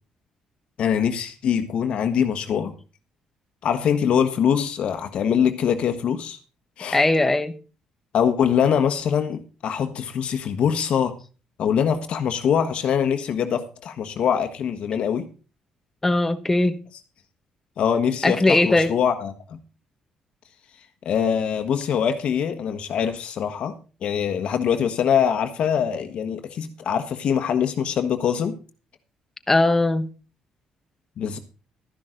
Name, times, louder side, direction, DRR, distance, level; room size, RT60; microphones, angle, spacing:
voice 1, 0.8-2.7 3.6-6.4 6.8-7.0 8.1-11.2 11.6-15.3 17.8-19.6 21.0-23.7 24.0-28.5 31.2-31.4, left 8 dB, 55° left, 1.3 m, -23 dB
voice 2, 6.9-7.6 16.0-16.8 18.2-19.0 29.5-30.1, left 2 dB, 10° left, 1.1 m, -19 dB
13.0 x 11.0 x 3.8 m
cardioid pair, 160°, 2 cm